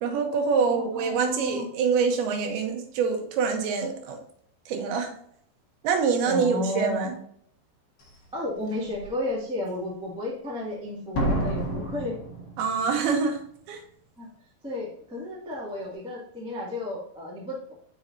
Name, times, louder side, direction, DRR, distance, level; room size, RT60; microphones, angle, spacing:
voice 1, 0.0-4.2 4.7-5.1 5.8-7.1 12.6-13.4 13.7-13.8, right 5 dB, 80° right, 4 dB, 2.9 m, -25 dB
voice 2, 0.6-1.7 6.2-7.2 8.3-12.2 14.2-14.3 14.6-17.7, left 2 dB, 5° right, -5 dB, 0.6 m, -32 dB
Slam, 8.0-8.1 8.7-9.1 11.1-13.0 13.3-13.4, right 1 dB, 45° left, 2.2 m, -30 dB
7.1 x 6.1 x 2.7 m, 0.66 s
omnidirectional pair, 4.6 m